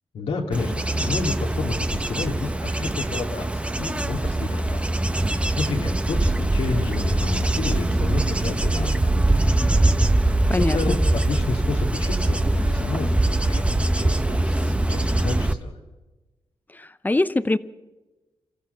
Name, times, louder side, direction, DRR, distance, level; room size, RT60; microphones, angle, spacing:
voice 1, 0.1-4.9 5.3-9.6 10.2-15.7, left 3 dB, 80° left, 2.8 m, -30 dB
Bird / Insect / Wind, 0.5-15.5, right 1 dB, 10° right, 1.0 m, -22 dB
voice 2, 10.5-11.0 16.7-17.6, left 2 dB, 15° left, 0.8 m, -23 dB
28.0 x 14.0 x 6.9 m
cardioid pair, 70°, 10 cm